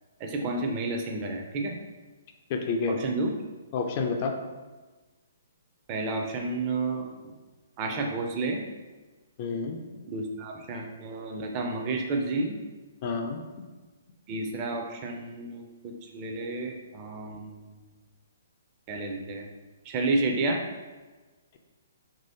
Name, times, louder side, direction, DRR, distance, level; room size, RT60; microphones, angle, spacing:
voice 1, 0.2-1.7 2.9-3.3 5.9-7.1 7.8-8.6 10.1-12.6 14.3-17.7 18.9-19.5 19.9-20.6, right 2 dB, 30° right, 2 dB, 0.4 m, -31 dB
voice 2, 2.5-3.0 3.7-4.3 9.4-9.8 13.0-13.4, left 4 dB, 40° left, 4 dB, 0.3 m, -29 dB
3.0 x 2.7 x 2.7 m, 1.3 s
figure-of-eight pair, 130°, 0 cm